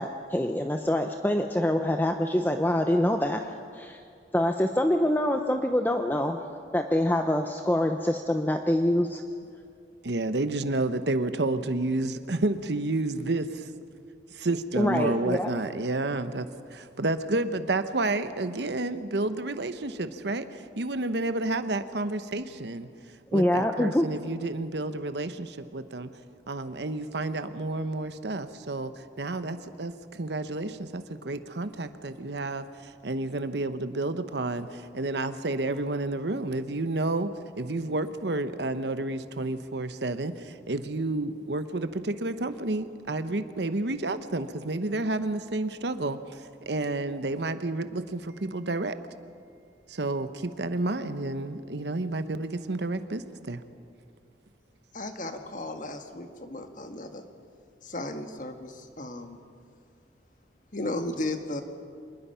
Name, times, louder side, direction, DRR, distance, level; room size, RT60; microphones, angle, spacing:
voice 1, 0.0-3.4 3.7-4.0 4.3-6.4 6.7-9.2 14.8-15.5 23.3-24.1, left 1 dB, 10° left, 5 dB, 0.7 m, -25 dB
voice 2, 10.0-13.7 14.3-22.9 23.3-26.1 26.5-28.9 29.2-37.3 37.6-49.0 49.9-53.6, right 2 dB, 70° right, 10 dB, 1.0 m, -30 dB
voice 3, 54.9-57.2 57.8-59.4 60.7-61.6, left 2 dB, 45° left, 6 dB, 1.6 m, -35 dB
25.5 x 20.5 x 5.7 m, 2.3 s
head